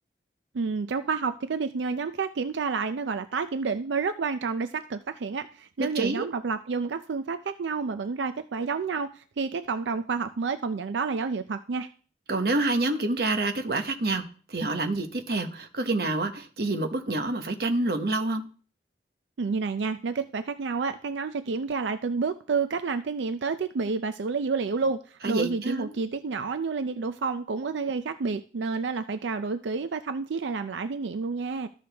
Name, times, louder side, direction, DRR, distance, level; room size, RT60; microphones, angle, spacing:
voice 1, 0.5-11.9 19.4-31.7, right 4 dB, 90° right, 10 dB, 0.5 m, -29 dB
voice 2, 5.8-6.3 12.3-18.4 25.2-25.9, right 2 dB, 60° right, 6 dB, 1.0 m, -27 dB
13.0 x 6.4 x 3.4 m, 0.41 s
head